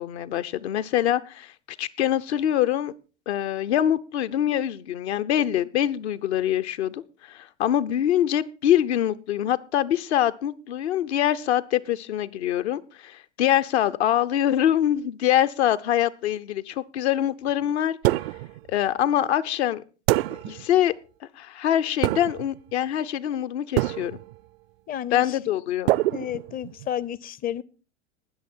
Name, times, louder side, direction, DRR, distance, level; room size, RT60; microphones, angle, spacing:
voice 1, 0.0-2.9 3.3-18.0 18.7-19.8 20.3-20.9 21.2-24.2 25.1-25.9, left 11 dB, 65° left, 0.8 m, -24 dB
sound 1, 18.0-18.6 20.1-20.7 22.0-22.6 23.8-24.4 25.9-26.9, right 18 dB, 60° right, 0.5 m, -25 dB
voice 2, 24.9-25.4 26.1-27.6, left 10 dB, 25° left, 0.5 m, -31 dB
19.5 x 6.5 x 4.4 m
hypercardioid pair, 90°, 35 cm